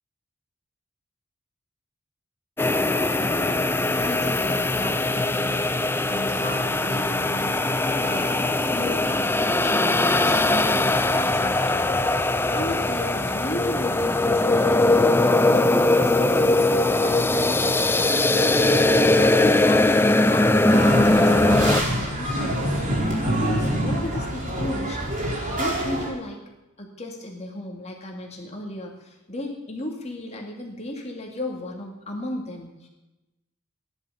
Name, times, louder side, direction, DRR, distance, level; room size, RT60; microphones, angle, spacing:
sound 1, 2.6-21.8, left 2 dB, 10° left, 0.5 m, -20 dB
voice 1, 3.1-18.5 19.2-19.9 20.2-22.8 23.3-25.0 25.5-26.4 26.8-32.9, left 1 dB, 30° left, 1 dB, 2.3 m, -35 dB
sound 2, 20.7-26.1, equal, 35° right, 4.6 m, -26 dB
16.0 x 11.0 x 6.9 m, 1.0 s
head